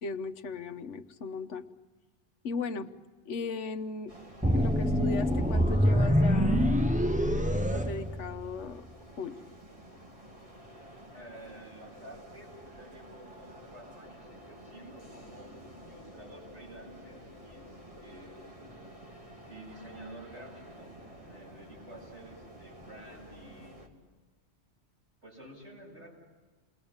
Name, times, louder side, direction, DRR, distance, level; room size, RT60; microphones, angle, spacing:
voice 1, 0.0-1.7 2.4-2.9 3.3-4.1 4.5-6.6 7.7-8.9 9.2-9.4, left 4 dB, 90° left, 9 dB, 1.3 m, -37 dB
sound 1, 4.1-23.9, equal, 30° right, 3.0 m, -50 dB
sound 2, 4.4-8.7, equal, 5° right, 0.9 m, -25 dB
voice 2, 11.1-15.5 15.9-18.4 19.5-23.8 25.2-26.1, right 1 dB, 80° right, -3 dB, 8.5 m, -51 dB
28.5 x 21.0 x 8.8 m, 1.3 s
omnidirectional pair, 1.2 m